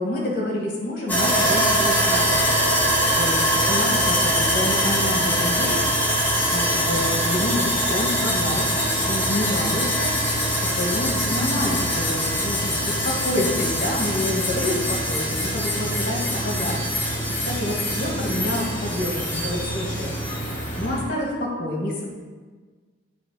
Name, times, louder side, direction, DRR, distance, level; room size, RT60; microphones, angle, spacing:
voice 1, 0.0-2.5 3.0-5.8 6.5-16.8 17.1-17.2 17.4-22.1, left 1 dB, 50° left, -2 dB, 1.8 m, -28 dB
Sawing, 1.1-21.0, equal, 10° left, 1.4 m, -23 dB
7.6 x 3.2 x 6.3 m, 1.4 s
head